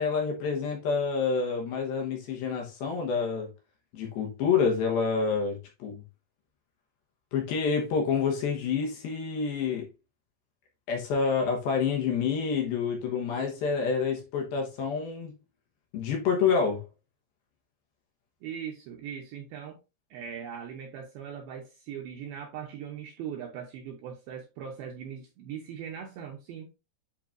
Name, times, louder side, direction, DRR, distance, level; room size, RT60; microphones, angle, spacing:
voice 1, 0.0-3.5 3.9-6.0 7.3-9.9 10.9-15.3 15.9-16.8, left 5 dB, 70° left, 2.6 m, -28 dB
voice 2, 18.4-19.8 20.1-26.7, right 8 dB, 75° right, 2.3 m, -40 dB
10.0 x 3.8 x 2.6 m
omnidirectional pair, 5.2 m